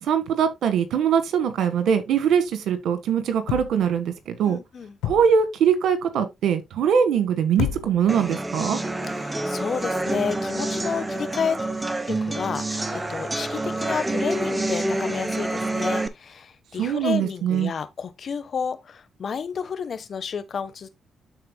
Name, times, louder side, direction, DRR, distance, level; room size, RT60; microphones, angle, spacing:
voice 1, 0.0-4.6 5.0-8.8 16.8-17.7, right 7 dB, 75° right, 1.5 m, -22 dB
sound 1, 3.5-4.0 5.0-5.5 7.6-8.2 9.0-9.1, left 12 dB, 90° left, 0.7 m, -30 dB
voice 2, 4.5-4.9 9.1-11.6 12.1-20.9, left 6 dB, 55° left, 1.3 m, -31 dB
sound 2, 8.1-16.1, right 2 dB, 20° right, 1.1 m, -27 dB
12.5 x 4.3 x 2.3 m
supercardioid pair, 60°, 0 cm